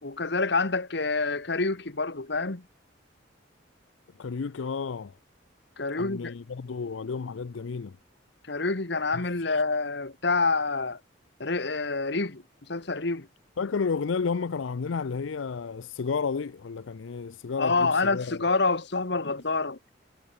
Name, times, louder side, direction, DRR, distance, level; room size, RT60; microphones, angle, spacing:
voice 1, 0.0-2.6 5.8-6.3 8.5-11.0 11.4-12.4 12.7-13.3 17.6-19.8, left 3 dB, 60° left, 1.5 m, -27 dB
voice 2, 4.2-5.1 6.0-8.0 9.1-9.6 13.6-18.4, left 5 dB, 75° left, 0.5 m, -32 dB
head